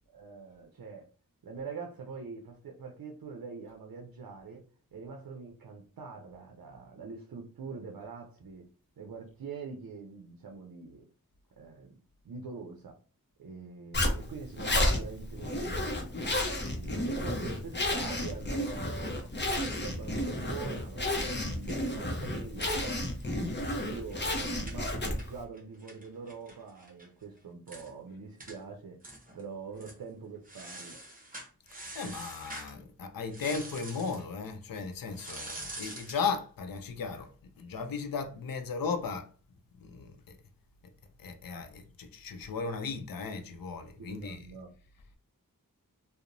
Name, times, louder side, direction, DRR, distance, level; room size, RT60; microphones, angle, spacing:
voice 1, 0.1-1.1 1.4-4.6 4.9-8.7 9.0-11.1 11.6-12.0 12.2-13.0 13.4-16.2 16.7-19.3 19.6-23.0 23.5-29.0 29.3-31.0 44.0-44.7, right 5 dB, 75° right, 0.5 m, -44 dB
Zipper (clothing), 13.9-25.4, left 1 dB, 30° left, 0.6 m, -32 dB
sound 1, 20.6-23.3 23.6-23.7 23.9-27.1 27.4-27.5 27.7-27.9 28.4-28.6 29.0-29.4 29.8-30.0 30.5-32.7 33.3-34.2 35.1-36.3, right 1 dB, 25° right, 0.8 m, -46 dB
voice 2, 31.9-37.3 37.6-39.3 39.8-40.2 41.2-44.5, left 5 dB, 75° left, 0.5 m, -36 dB
2.8 x 2.0 x 2.5 m
wide cardioid pair, 40°, 35 cm